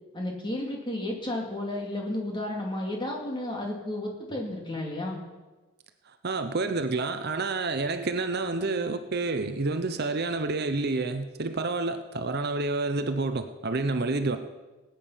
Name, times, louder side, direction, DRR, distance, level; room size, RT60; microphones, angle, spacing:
voice 1, 0.1-5.2, left 1 dB, 20° left, 0 dB, 2.4 m, -32 dB
voice 2, 6.2-14.4, right 3 dB, 45° right, 9 dB, 0.7 m, -29 dB
19.0 x 9.0 x 5.6 m, 1.2 s
head